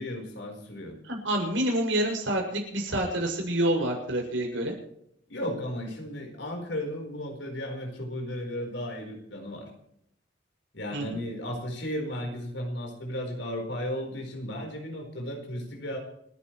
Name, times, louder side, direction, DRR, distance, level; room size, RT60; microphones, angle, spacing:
voice 1, 0.0-0.9 5.3-9.7 10.7-16.0, equal, 70° left, 2 dB, 4.6 m, -35 dB
voice 2, 1.1-4.7 10.9-11.2, right 1 dB, 80° right, 1 dB, 6.7 m, -27 dB
29.5 x 10.5 x 3.3 m, 0.74 s
head